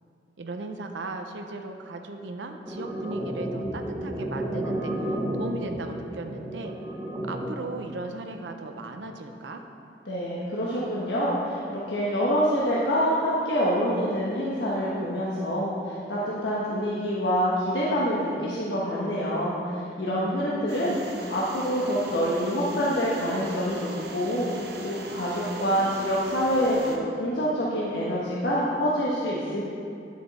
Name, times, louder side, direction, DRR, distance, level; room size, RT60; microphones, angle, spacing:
voice 1, 0.4-6.7 7.2-9.6 20.0-20.4, right 2 dB, 90° right, 5 dB, 0.7 m, -37 dB
sound 1, 2.7-7.7, right 1 dB, 15° right, 0.9 m, -32 dB
voice 2, 10.1-29.6, equal, 75° left, -7 dB, 1.3 m, -26 dB
sound 2, 20.7-27.0, right 2 dB, 65° right, 0.9 m, -40 dB
9.9 x 7.4 x 4.2 m, 2.5 s
head